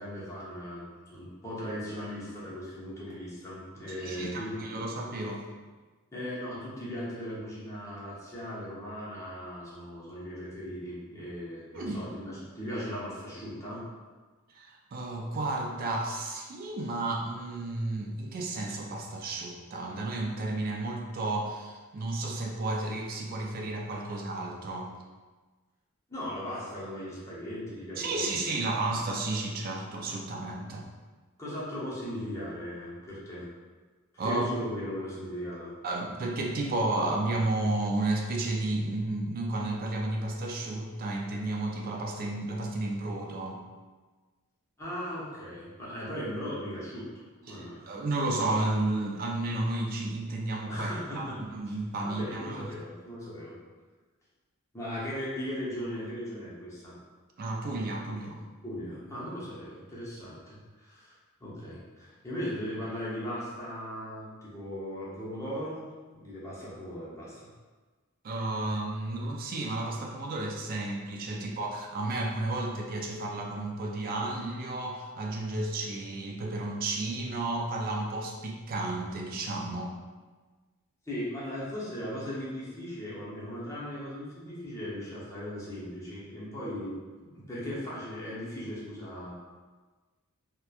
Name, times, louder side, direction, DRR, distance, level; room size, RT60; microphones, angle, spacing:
voice 1, 0.0-4.5 6.1-13.8 26.1-28.7 31.4-33.5 34.2-35.7 44.8-47.1 47.5-47.8 50.7-51.4 51.7-51.8 52.0-53.6 54.7-57.0 58.6-65.8 66.1-67.5 71.3-71.5 81.1-86.9 87.2-89.3, equal, 15° left, -8 dB, 0.7 m, -38 dB
voice 2, 4.0-5.4 11.7-12.0 14.5-24.9 28.0-30.9 34.2-34.5 35.8-43.6 47.5-52.7 57.4-58.4 68.2-80.0, right 2 dB, 45° right, 0 dB, 0.3 m, -32 dB
2.9 x 2.1 x 2.3 m, 1.3 s
head